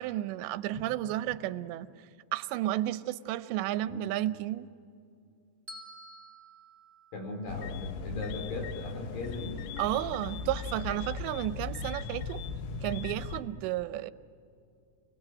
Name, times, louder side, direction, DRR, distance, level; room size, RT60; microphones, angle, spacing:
voice 1, 0.0-1.9 2.3-4.7 9.8-12.4 12.8-14.1, right 14 dB, 90° right, 14 dB, 3.0 m, -32 dB
Bell, 5.7-7.9, equal, 20° right, 5.0 m, -50 dB
voice 2, 7.1-9.6, left 2 dB, 55° left, 3 dB, 5.5 m, -38 dB
sound 1, 7.5-13.4, left 4 dB, 85° left, 3.3 m, -38 dB
29.5 x 19.5 x 9.0 m, 2.5 s
omnidirectional pair, 5.0 m